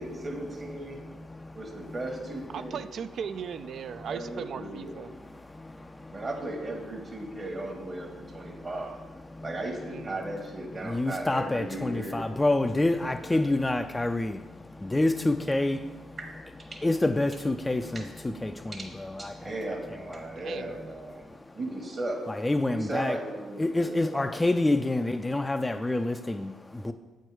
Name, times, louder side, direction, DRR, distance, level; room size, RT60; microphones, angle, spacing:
voice 1, 0.0-1.0 1.5-2.8 4.1-5.0 6.1-9.0 9.4-12.2 13.2-13.6 16.2-16.3 16.7-16.8 17.9-18.0 18.7-18.9 19.2-21.2 21.5-22.2 22.7-24.3, right 1 dB, 40° right, 1 dB, 1.2 m, -36 dB
voice 2, 0.9-1.9 5.3-6.2 8.3-8.7 9.3-9.5 10.8-16.2 16.8-19.5 20.1-20.4 21.2-21.6 22.3-23.2 23.6-26.9, left 2 dB, 15° left, 7 dB, 0.3 m, -28 dB
voice 3, 2.5-5.1 9.8-10.2 20.4-20.7, right 7 dB, 65° right, 12 dB, 0.3 m, -38 dB
7.8 x 4.5 x 4.7 m, 1.2 s
supercardioid pair, 60°, 0 cm